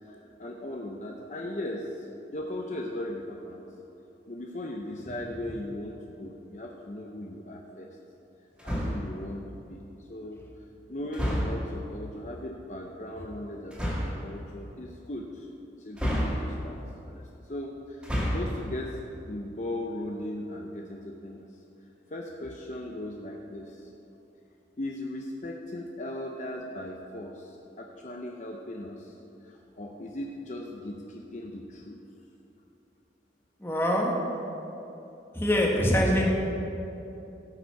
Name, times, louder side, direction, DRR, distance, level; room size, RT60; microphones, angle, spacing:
voice 1, 0.0-2.1 2.3-3.6 4.3-7.9 8.6-9.8 10.1-10.4 10.9-15.5 15.8-16.8 17.1-19.0 19.3-21.5 22.1-23.9 24.8-32.0, left 1 dB, 40° left, 0 dB, 0.7 m, -38 dB
sound 1, 8.6-9.2 11.1-11.8 13.7-14.2 16.0-16.8 17.9-18.6, equal, 5° right, 1.9 m, -29 dB
voice 2, 33.6-34.1 35.3-36.3, equal, 15° left, -2 dB, 1.4 m, -24 dB
15.5 x 6.9 x 4.7 m, 2.9 s
head